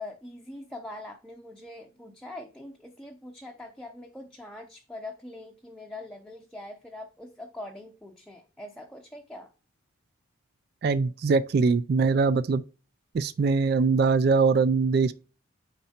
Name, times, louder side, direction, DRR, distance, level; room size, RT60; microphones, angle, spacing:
voice 1, 0.0-9.5, left 2 dB, 5° left, 0.6 m, -43 dB
voice 2, 10.8-12.6 13.1-15.1, right 4 dB, 50° right, 0.3 m, -22 dB
9.1 x 5.4 x 2.8 m
head